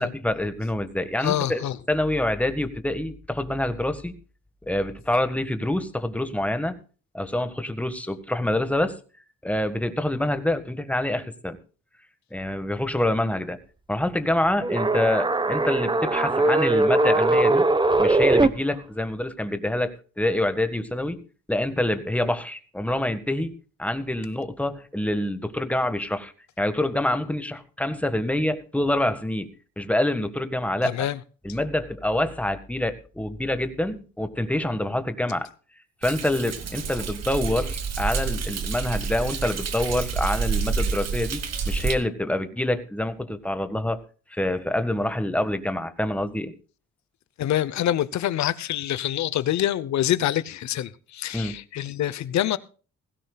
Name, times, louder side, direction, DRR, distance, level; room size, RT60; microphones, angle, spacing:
voice 1, 0.0-1.6 1.9-4.1 4.7-6.7 7.1-9.0 9.4-11.6 12.3-13.6 13.9-17.6 18.0-21.2 21.5-23.5 23.8-26.3 26.6-29.5 29.8-31.1 31.4-35.5 36.0-44.0 44.3-46.5 51.3-51.6, left 1 dB, 5° left, 1.6 m, -26 dB
voice 2, 1.2-1.8 30.8-31.2 47.4-52.6, left 12 dB, 65° left, 0.9 m, -26 dB
sound 1, 14.6-18.5, right 2 dB, 15° right, 1.0 m, -20 dB
Thunder, 36.0-41.9, right 5 dB, 60° right, 2.0 m, -28 dB
17.0 x 16.0 x 2.4 m
cardioid pair, 90°, 30 cm